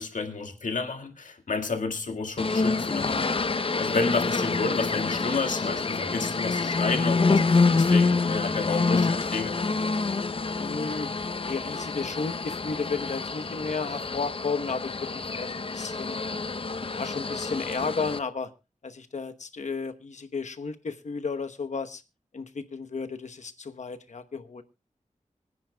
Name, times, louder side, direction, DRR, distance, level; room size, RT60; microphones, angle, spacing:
voice 1, 0.0-3.5 3.8-9.6, left 4 dB, 85° left, 1.9 m, -31 dB
sound 1, 2.4-18.2, left 4 dB, 45° left, 0.7 m, -27 dB
voice 2, 10.6-16.2 16.9-18.5 18.8-22.0 22.3-24.6, left 4 dB, 65° left, 1.0 m, -33 dB
25.5 x 9.8 x 2.3 m
wide cardioid pair, 100°, 13 cm